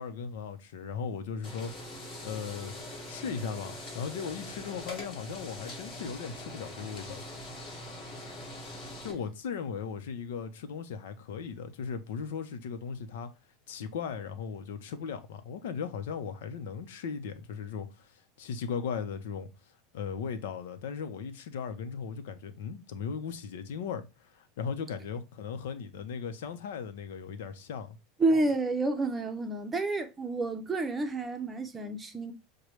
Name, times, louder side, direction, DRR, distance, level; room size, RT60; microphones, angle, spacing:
voice 1, 0.0-2.7 3.1-7.2 9.0-13.3 13.7-19.5 19.9-28.0, left 6 dB, 85° left, 0.7 m, -37 dB
sound 1, 1.4-9.1, left 1 dB, 35° left, 2.0 m, -43 dB
voice 2, 28.2-32.3, right 2 dB, 15° right, 0.7 m, -29 dB
6.4 x 2.2 x 3.0 m
supercardioid pair, 145°, 0 cm